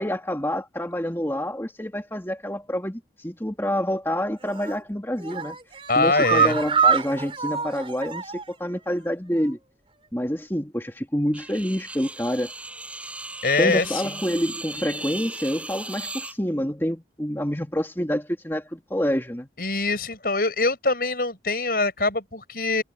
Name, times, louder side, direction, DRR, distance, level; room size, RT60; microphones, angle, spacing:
voice 1, 0.0-5.6 6.0-9.6 10.1-12.5 13.6-19.5, equal, 15° left, 2.6 m, -27 dB
sound 1, 4.4-4.8 5.2-8.6 8.9-9.0 9.4-9.5, right 6 dB, 30° right, 4.3 m, -25 dB
voice 2, 5.9-6.6 13.4-14.1 19.6-22.8, left 3 dB, 55° left, 7.3 m, -23 dB
sound 2, 11.3-16.3, right 2 dB, 5° right, 6.9 m, -36 dB
head